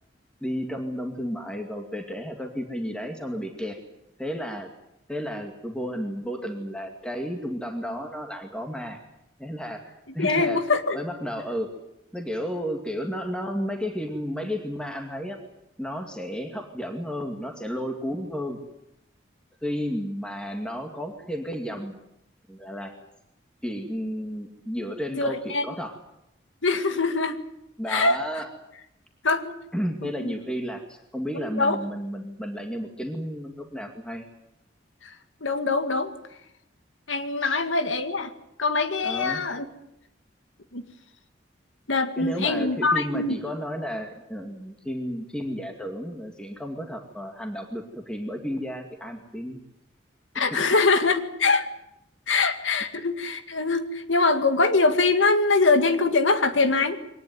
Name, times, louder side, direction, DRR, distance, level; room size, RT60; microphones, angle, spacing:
voice 1, 0.4-3.8 4.2-4.7 5.1-9.0 9.4-10.6 10.9-11.7 12.1-15.4 15.8-18.6 19.6-22.0 22.5-22.9 23.6-26.0 27.8-28.5 29.7-34.3 37.4-37.6 39.0-39.4 42.2-49.6 50.3-50.4, equal, 5° left, 3 dB, 2.3 m, -32 dB
voice 2, 10.2-11.0 25.1-25.6 26.6-27.4 27.9-28.2 29.2-29.5 30.0-30.3 31.3-31.8 35.0-35.1 35.4-36.1 37.1-38.3 38.6-39.7 40.7-40.8 41.9-43.4 50.3-51.7 52.3-57.0, left 3 dB, 85° left, 9 dB, 2.1 m, -23 dB
23.5 x 19.5 x 9.5 m, 0.83 s
head